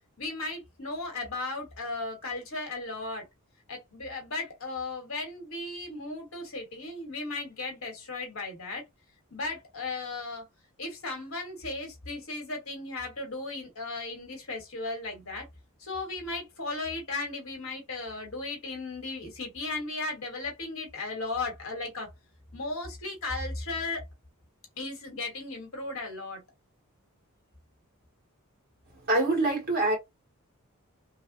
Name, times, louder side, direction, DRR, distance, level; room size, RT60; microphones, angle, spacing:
voice 1, 0.2-3.2 3.7-8.8 9.3-10.4 10.8-15.5 15.8-22.1 22.5-24.0 24.8-26.4, left 3 dB, 65° left, 1.2 m, -36 dB
voice 2, 29.1-30.0, right 2 dB, 45° right, 1.8 m, -24 dB
3.2 x 2.1 x 2.5 m
head